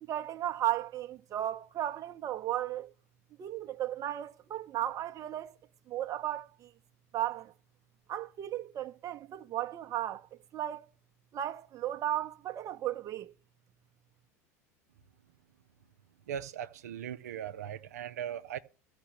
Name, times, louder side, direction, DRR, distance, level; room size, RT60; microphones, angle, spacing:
voice 1, 0.0-2.9 3.4-5.6 5.9-6.7 7.1-7.5 8.1-10.9 11.3-13.3, right 12 dB, 40° right, 1.0 m, -35 dB
voice 2, 16.3-18.6, right 9 dB, 80° right, 0.7 m, -39 dB
14.0 x 5.2 x 8.9 m
hypercardioid pair, 80°, 9 cm